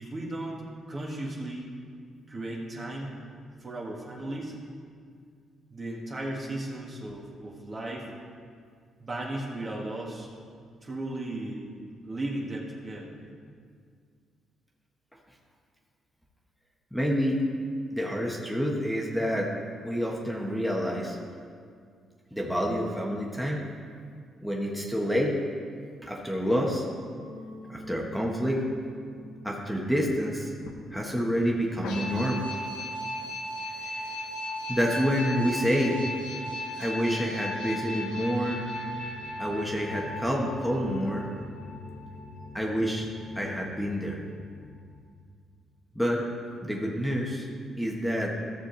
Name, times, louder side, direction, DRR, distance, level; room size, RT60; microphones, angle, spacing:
voice 1, 0.0-1.7 2.3-3.2 3.6-4.6 5.7-8.1 9.0-10.3 10.8-11.7 12.0-13.1, right 1 dB, 35° right, -3 dB, 1.7 m, -35 dB
voice 2, 16.9-17.4 17.9-19.5 19.8-21.2 22.3-23.6 24.4-25.4 26.0-26.8 27.7-28.6 29.4-30.5 30.9-32.4 33.8-34.1 34.7-36.0 36.8-38.6 39.4-41.2 42.5-43.1 43.3-44.2 45.9-46.3 46.6-47.5 47.8-48.3, equal, ahead, -2 dB, 1.3 m, -28 dB
sound 1, 27.2-45.0, left 1 dB, 90° left, 1.1 m, -38 dB
14.5 x 6.8 x 4.0 m, 2.1 s
cardioid pair, 90°, 0 cm